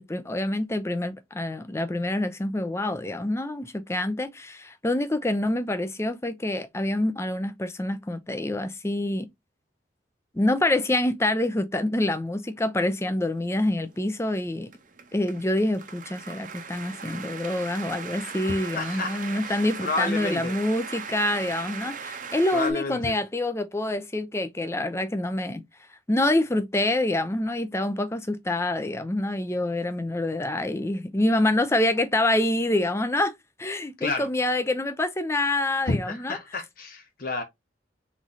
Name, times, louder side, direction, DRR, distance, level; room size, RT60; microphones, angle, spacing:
voice 1, 0.0-9.3 10.3-14.7 15.1-25.6 26.1-33.3 33.6-36.4, left 1 dB, 15° left, 0.5 m, -26 dB
sound 1, 13.4-22.7, right 5 dB, 45° right, 0.7 m, -39 dB
voice 2, 18.7-20.5 22.5-23.2 34.0-34.3 35.9-37.4, left 3 dB, 50° left, 0.7 m, -30 dB
3.7 x 3.1 x 4.0 m
head